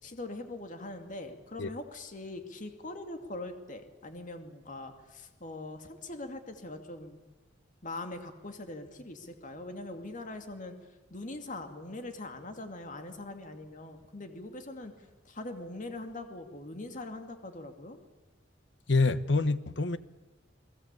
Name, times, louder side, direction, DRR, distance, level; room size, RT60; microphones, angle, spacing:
voice 1, 0.0-7.2 7.8-10.8 11.1-14.9 15.2-18.0, left 2 dB, 45° left, 2.5 m, -42 dB
voice 2, 18.9-20.0, left 3 dB, 70° left, 1.2 m, -26 dB
29.5 x 21.0 x 8.3 m
head